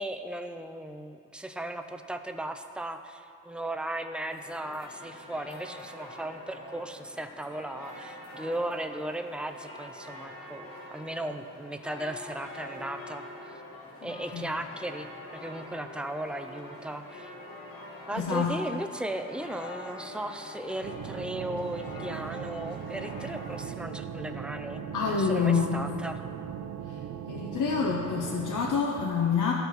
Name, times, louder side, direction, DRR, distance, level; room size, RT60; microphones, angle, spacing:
voice 1, 0.0-13.3 14.0-15.1 15.3-17.3 18.1-26.2, right 1 dB, 5° right, 7 dB, 0.4 m, -36 dB
sound 1, 4.3-23.7, left 1 dB, 80° left, 1.7 m, -45 dB
voice 2, 14.0-14.5 18.1-18.5 24.9-25.9 26.9-27.0 27.3-29.5, left 6 dB, 65° left, -1 dB, 0.8 m, -27 dB
sound 2, 20.8-28.8, right 8 dB, 65° right, 0.5 m, -39 dB
12.5 x 4.5 x 4.0 m, 2.4 s
cardioid pair, 95°, 34 cm